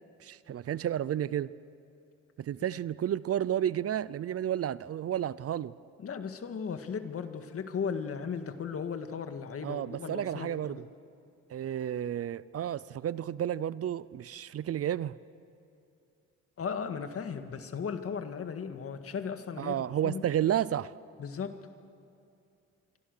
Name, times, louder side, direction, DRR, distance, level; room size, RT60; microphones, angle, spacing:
voice 1, 0.2-1.5 2.4-5.7 9.6-10.8 11.5-15.2 19.6-20.9, right 10 dB, 50° right, 18 dB, 0.6 m, -31 dB
voice 2, 6.0-10.8 16.6-20.3 21.2-21.6, left 6 dB, 50° left, 8 dB, 1.8 m, -36 dB
26.0 x 24.5 x 6.7 m, 2.5 s
cardioid pair, 90°, 30 cm